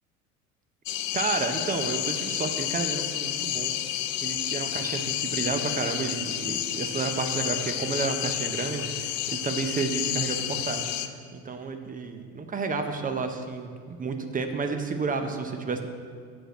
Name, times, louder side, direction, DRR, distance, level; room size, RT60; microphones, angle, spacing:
sound 1, 0.9-11.1, left 12 dB, 55° left, 0.6 m, -30 dB
voice 1, 1.1-3.8 4.2-15.9, right 4 dB, 20° right, 6 dB, 0.7 m, -31 dB
8.0 x 6.1 x 6.0 m, 2.2 s
figure-of-eight pair, 70°, 47 cm